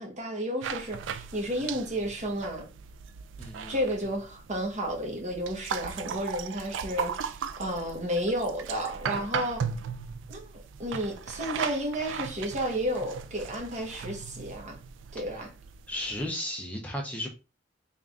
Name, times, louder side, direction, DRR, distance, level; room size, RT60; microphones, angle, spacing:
voice 1, 0.0-2.6 3.7-9.6 10.3-14.8 15.1-15.5, equal, 40° right, 1.3 m, -32 dB
sound 1, 0.6-16.3, right 6 dB, 85° right, 0.3 m, -38 dB
voice 2, 3.4-3.8 15.3-15.5 15.9-17.3, left 1 dB, 10° left, 0.5 m, -34 dB
3.6 x 2.5 x 3.5 m
head